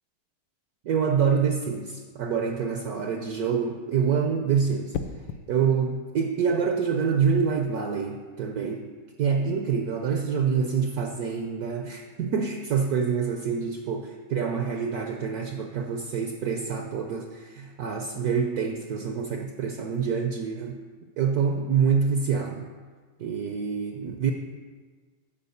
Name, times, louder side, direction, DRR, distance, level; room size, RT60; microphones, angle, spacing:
voice 1, 0.8-5.0 5.5-8.9 9.2-20.8 21.2-22.7 23.2-24.3, right 6 dB, 70° right, 4 dB, 0.9 m, -26 dB
sound 1, 2.1-2.5 4.9-5.5 7.4-7.7, left 7 dB, 80° left, 1.3 m, -35 dB
10.5 x 4.3 x 6.9 m, 1.5 s
omnidirectional pair, 2.1 m